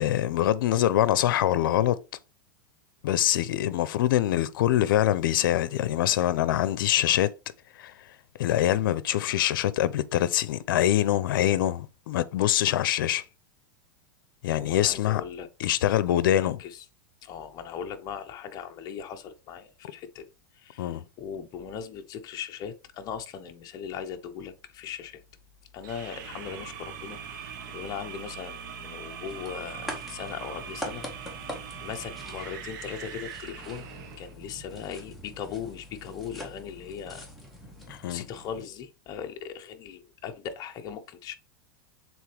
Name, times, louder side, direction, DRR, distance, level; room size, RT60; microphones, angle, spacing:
voice 1, 0.0-2.0 3.0-7.3 7.8-7.9 8.4-13.2 14.4-15.2 15.6-16.6 20.8-21.0 37.9-38.3, left 12 dB, 75° left, 0.7 m, -24 dB
voice 2, 14.5-15.5 16.4-16.8 17.2-20.3 20.6-25.2 25.7-31.0 31.4-33.9 34.2-37.3 38.1-41.4, left 7 dB, 35° left, 1.0 m, -39 dB
sound 1, 25.8-34.3, right 8 dB, 65° right, 1.6 m, -41 dB
sound 2, 29.3-38.6, equal, ahead, 1.8 m, -44 dB
7.3 x 4.0 x 3.5 m
supercardioid pair, 150°, 11 cm